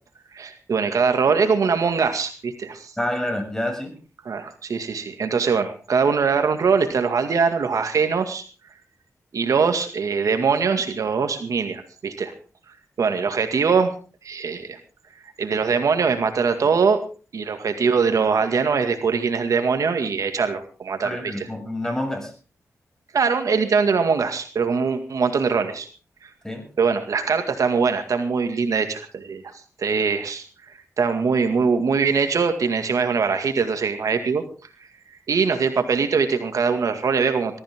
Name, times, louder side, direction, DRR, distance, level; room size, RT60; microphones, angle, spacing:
voice 1, 0.3-2.9 4.3-8.4 9.3-12.3 13.0-13.9 14.2-14.8 15.4-17.0 17.3-21.5 23.1-25.9 26.2-26.3 26.8-29.5 29.8-30.4 31.0-34.4 35.3-37.6, right 5 dB, 70° right, 7 dB, 2.0 m, -22 dB
voice 2, 3.0-4.0 21.0-22.3 26.4-26.6, left 1 dB, 10° left, 5 dB, 6.8 m, -28 dB
21.0 x 14.0 x 3.7 m, 0.36 s
cardioid pair, 70°, 6 cm